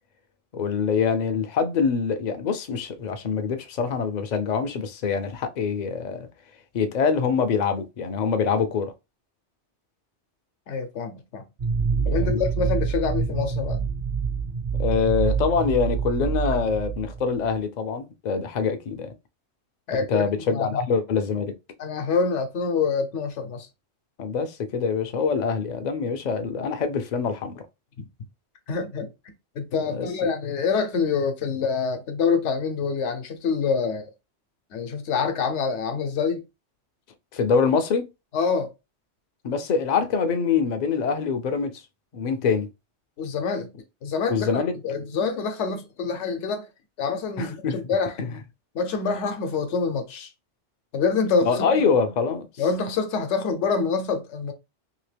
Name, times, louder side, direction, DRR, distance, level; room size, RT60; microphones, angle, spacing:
voice 1, 0.5-6.3 6.7-8.9 11.9-12.4 14.8-19.1 20.1-21.6 24.2-27.7 29.9-30.1 37.3-38.1 39.4-41.8 42.1-42.7 44.3-44.7 47.4-47.8 48.3-48.4 51.4-52.5, left 5 dB, 55° left, 0.5 m, -24 dB
voice 2, 10.7-11.4 12.0-13.9 19.9-20.8 21.8-23.7 28.7-29.1 29.5-34.1 34.7-36.4 38.3-38.7 43.2-43.7 44.0-46.7 47.0-48.2 48.7-50.3 50.9-51.5 52.6-54.5, left 5 dB, 80° left, 1.0 m, -26 dB
sound 1, 11.6-17.6, right 6 dB, 45° right, 0.5 m, -26 dB
2.9 x 2.8 x 3.3 m
omnidirectional pair, 1.2 m